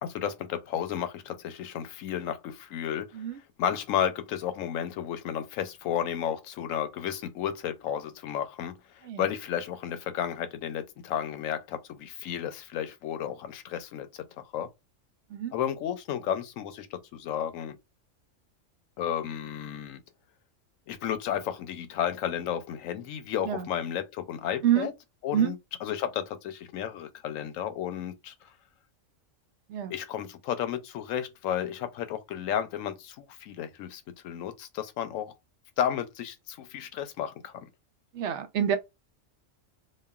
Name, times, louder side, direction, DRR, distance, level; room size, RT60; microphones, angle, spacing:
voice 1, 0.0-3.1 3.6-14.7 15.5-17.8 19.0-20.0 20.9-24.9 25.2-28.3 29.9-35.3 35.8-37.5, left 9 dB, 85° left, 1.0 m, -32 dB
voice 2, 38.1-38.8, right 10 dB, 70° right, 0.8 m, -27 dB
3.0 x 2.3 x 2.3 m
omnidirectional pair, 1.3 m